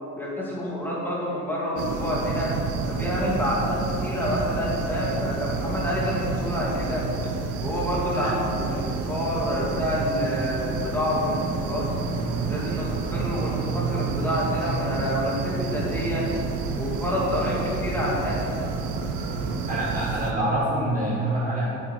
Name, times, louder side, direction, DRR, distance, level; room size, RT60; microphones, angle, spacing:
voice 1, 0.1-2.6 2.9-7.1 7.6-11.9 12.5-16.4 16.8-18.4, equal, 5° left, -6 dB, 2.3 m, -28 dB
sound 1, 1.8-20.3, right 4 dB, 75° right, 1.0 m, -29 dB
voice 2, 19.7-21.7, right 1 dB, 25° right, -6 dB, 1.5 m, -26 dB
9.1 x 8.7 x 4.8 m, 2.7 s
cardioid pair, 140°, 30 cm